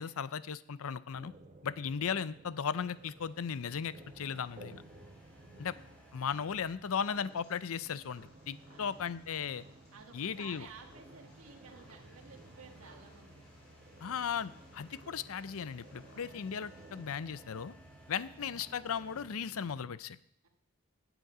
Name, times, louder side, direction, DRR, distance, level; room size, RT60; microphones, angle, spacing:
voice 1, 0.0-1.3 1.6-4.8 5.6-5.8 6.1-9.6 10.1-10.7 14.0-17.7 18.1-20.2, left 7 dB, 70° left, 17 dB, 0.5 m, -36 dB
sound 1, 1.1-19.9, right 2 dB, 35° right, 1.1 m, -56 dB
sound 2, 2.7-19.3, equal, 5° left, 6.2 m, -61 dB
voice 2, 5.3-6.0 8.7-9.1 9.9-13.5 20.4-20.5, right 5 dB, 70° right, 2 dB, 1.5 m, -55 dB
Purr, 6.9-17.0, equal, 55° left, 4.6 m, -62 dB
17.0 x 8.1 x 4.9 m, 0.73 s
head